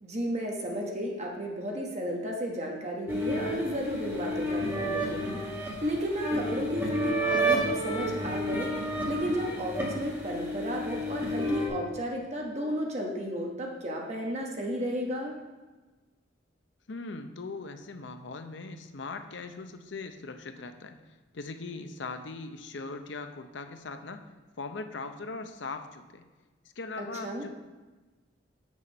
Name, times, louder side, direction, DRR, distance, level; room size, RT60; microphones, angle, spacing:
voice 1, 0.0-15.3 27.0-27.4, equal, 35° right, -1 dB, 1.1 m, -33 dB
sound 1, 3.1-11.7, right 1 dB, 15° right, 1.7 m, -31 dB
voice 2, 16.9-21.0 21.3-24.3 24.6-26.2 26.8-27.5, left 3 dB, 70° left, 7 dB, 0.7 m, -40 dB
7.6 x 6.3 x 5.4 m, 1.2 s
head